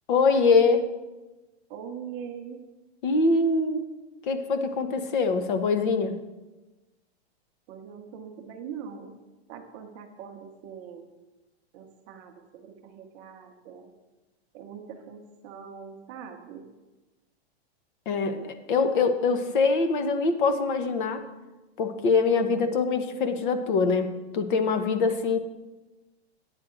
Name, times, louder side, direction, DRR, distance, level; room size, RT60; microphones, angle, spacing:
voice 1, 0.1-0.9 3.0-3.8 4.2-6.2 18.1-21.3 21.8-25.4, left 4 dB, 50° left, 9 dB, 1.0 m, -24 dB
voice 2, 1.7-2.6 7.7-9.1 9.5-11.1 11.7-13.9 14.5-16.7, right 7 dB, 30° right, 4 dB, 0.8 m, -42 dB
9.4 x 9.1 x 3.8 m, 1.1 s
supercardioid pair, 165°, 33 cm